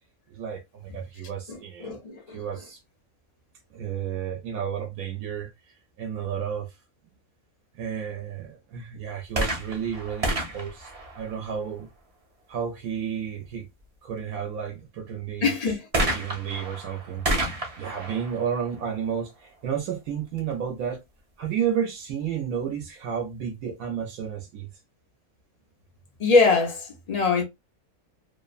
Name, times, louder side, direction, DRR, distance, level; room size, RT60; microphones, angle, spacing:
voice 1, 0.3-1.9 2.3-2.8 3.7-5.5 6.0-6.8 7.7-10.9 11.1-11.9 12.5-13.7 14.0-15.5 16.0-21.0 21.4-24.7, right 8 dB, 90° right, 1.1 m, -32 dB
voice 2, 1.5-2.4 15.4-15.9 26.2-27.4, left 4 dB, 75° left, 0.3 m, -23 dB
sound 1, 9.3-11.9 15.9-19.6 20.4-20.5, right 1 dB, 35° right, 0.6 m, -30 dB
2.8 x 2.0 x 2.3 m
omnidirectional pair, 1.5 m